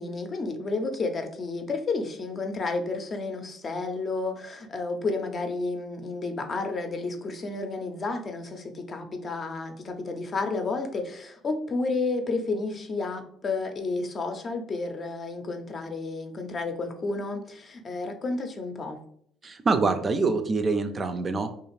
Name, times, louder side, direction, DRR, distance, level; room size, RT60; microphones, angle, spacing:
voice 1, 0.0-19.0, left 3 dB, 40° left, 0.5 m, -31 dB
voice 2, 19.4-21.5, right 4 dB, 40° right, 0.3 m, -25 dB
2.4 x 2.4 x 3.1 m
hypercardioid pair, 65°, 0 cm